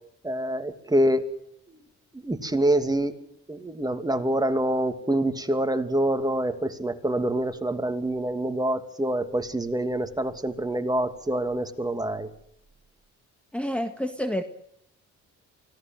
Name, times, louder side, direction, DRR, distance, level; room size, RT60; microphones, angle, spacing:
voice 1, 0.2-1.2 2.1-3.2 3.5-12.3, right 1 dB, 15° right, 7 dB, 2.7 m, -26 dB
voice 2, 13.5-14.4, equal, 5° left, 7 dB, 1.9 m, -28 dB
24.5 x 18.0 x 7.8 m, 0.71 s
cardioid pair, 90°, 30 cm